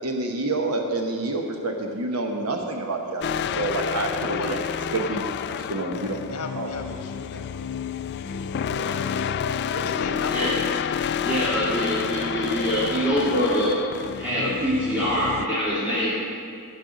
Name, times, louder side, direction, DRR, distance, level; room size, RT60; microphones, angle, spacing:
voice 1, 0.0-4.6 4.9-5.3 5.7-6.2 6.6-6.7, right 2 dB, 75° right, 2 dB, 1.1 m, -28 dB
sound 1, 3.2-15.5, left 8 dB, 50° left, 0.3 m, -29 dB
voice 2, 4.2-4.6 4.9-5.3 5.8-8.2 8.7-9.3 9.7-10.6 11.4-11.5, left 3 dB, 80° left, 5 dB, 1.2 m, -36 dB
voice 3, 11.2-13.7 14.1-16.1, equal, 5° right, -12 dB, 2.3 m, -24 dB
15.0 x 5.5 x 6.3 m, 2.4 s
head